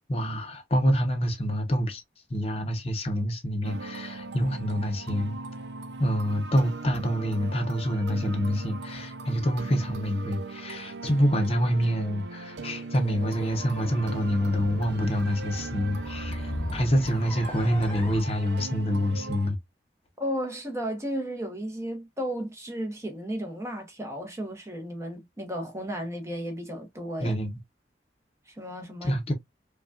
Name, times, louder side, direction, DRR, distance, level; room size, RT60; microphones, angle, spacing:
voice 1, 0.1-2.0 2.3-5.4 6.0-19.6 27.2-27.5 29.0-29.3, equal, 35° left, 0.7 m, -26 dB
sound 1, 3.6-19.5, right 3 dB, 80° right, 0.5 m, -39 dB
sound 2, 13.2-18.2, left 1 dB, 5° left, 1.3 m, -38 dB
voice 2, 20.2-27.4 28.5-29.2, equal, 15° right, 0.9 m, -34 dB
5.1 x 2.3 x 2.3 m
head